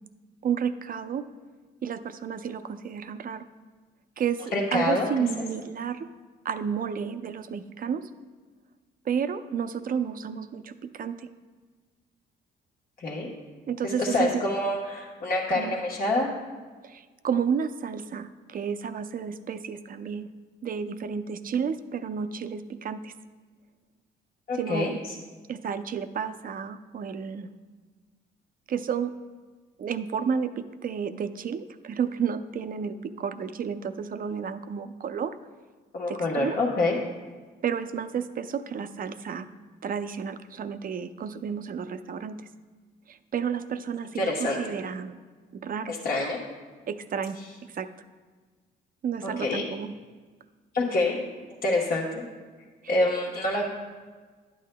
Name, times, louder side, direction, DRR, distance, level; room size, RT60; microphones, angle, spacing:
voice 1, 0.4-1.2 1.8-3.5 4.2-6.1 6.4-8.1 9.1-11.3 13.7-14.4 15.5-15.8 16.8-20.3 20.6-23.1 24.6-25.0 25.5-27.5 28.7-29.1 29.8-35.4 36.1-36.6 37.6-39.5 39.8-42.4 43.1-45.2 45.5-45.9 46.9-47.4 47.7-47.9 49.0-50.0 52.8-52.9, right 7 dB, 45° right, 11 dB, 0.5 m, -31 dB
voice 2, 4.5-5.1 13.0-13.3 14.0-16.3 24.5-24.9 35.9-37.0 44.1-44.6 45.9-46.4 49.2-49.6 50.7-51.2 51.6-52.2 52.9-53.6, left 2 dB, 50° left, -3 dB, 1.1 m, -26 dB
11.5 x 8.3 x 2.2 m, 1.4 s
cardioid pair, 90°, 20 cm